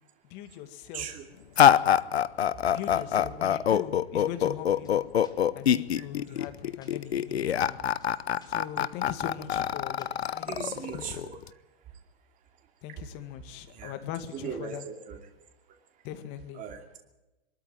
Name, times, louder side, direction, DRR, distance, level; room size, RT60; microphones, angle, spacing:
voice 1, 0.3-1.1 2.7-5.1 5.5-7.8 8.5-10.6 10.9-11.2 12.8-14.8 16.0-16.6, left 10 dB, 35° left, 10 dB, 2.1 m, -40 dB
voice 2, 0.9-1.2 2.8-3.0 6.3-6.4 10.5-11.4 12.9-13.1 13.7-14.0 14.3-15.2 16.5-17.0, right 8 dB, 25° right, 3 dB, 2.6 m, -39 dB
sound 1, 1.6-11.5, left 9 dB, 90° left, 0.9 m, -25 dB
sound 2, 4.8-4.9 5.2-5.3 5.6-5.7 6.0-6.1 6.4-6.9 7.2-7.3 7.6-7.7 8.0-8.1 8.4-8.5 8.8-8.9 9.2-9.3 9.6-9.7 10.0-10.6, left 3 dB, 15° left, 3.2 m, -54 dB
22.5 x 13.5 x 9.1 m, 1.0 s
hypercardioid pair, 135°, 31 cm